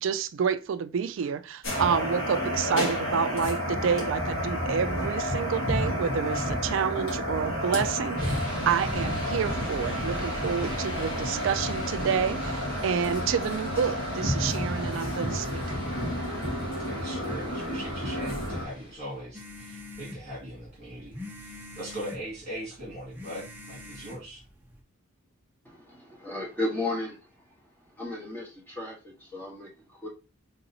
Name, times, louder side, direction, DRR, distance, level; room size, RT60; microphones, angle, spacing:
voice 1, 0.0-15.6, right 7 dB, 60° right, 0.3 m, -29 dB
sound 1, 1.6-18.6, equal, 70° left, 1.9 m, -30 dB
sound 2, 8.2-19.3, left 1 dB, 45° left, 1.8 m, -41 dB
voice 2, 16.9-24.4, right 1 dB, 30° right, 1.9 m, -40 dB
sound 3, 19.3-24.8, left 2 dB, 10° right, 0.5 m, -44 dB
voice 3, 25.6-27.6 27.9-30.1, left 2 dB, 10° left, 1.3 m, -35 dB
4.0 x 3.8 x 2.7 m
head